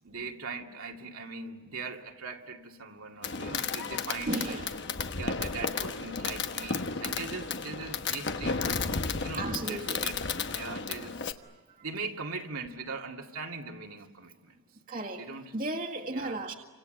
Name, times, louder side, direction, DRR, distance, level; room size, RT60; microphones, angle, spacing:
voice 1, 0.0-4.6 5.2-8.8 9.2-10.2 10.5-11.2 11.8-14.6 15.2-15.5 16.1-16.4, right 4 dB, 75° right, 1 dB, 2.3 m, -40 dB
Fireworks, 3.2-11.3, left 5 dB, 50° left, 1.2 m, -33 dB
voice 2, 4.3-4.9 9.3-10.1 10.7-10.8 11.8-11.9 14.9-16.5, right 2 dB, 40° right, 0 dB, 1.9 m, -35 dB
29.0 x 26.0 x 7.8 m, 1.4 s
head